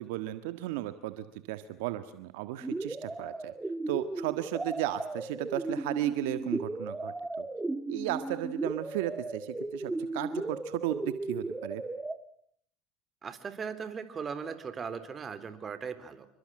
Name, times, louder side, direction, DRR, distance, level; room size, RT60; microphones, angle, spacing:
voice 1, 0.0-3.5 3.9-7.5 7.9-11.8, right 15 dB, 80° right, 11 dB, 1.6 m, -35 dB
sound 1, 2.6-12.2, right 2 dB, 10° right, 1.9 m, -36 dB
voice 2, 13.2-16.3, right 6 dB, 30° right, 11 dB, 3.7 m, -38 dB
28.5 x 24.0 x 7.8 m, 0.67 s
supercardioid pair, 95°, 0 cm